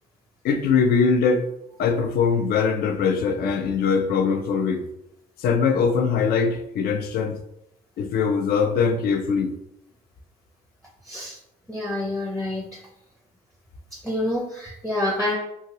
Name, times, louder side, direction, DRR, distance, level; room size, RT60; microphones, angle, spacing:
voice 1, 0.4-1.4 1.8-4.9 5.4-7.4 8.0-9.5, left 5 dB, 65° left, 7 dB, 0.4 m, -22 dB
voice 2, 11.0-11.4 11.7-12.8 14.0-15.4, left 1 dB, ahead, -1 dB, 0.5 m, -27 dB
2.8 x 2.7 x 2.9 m, 0.80 s
cardioid pair, 110°, 17 cm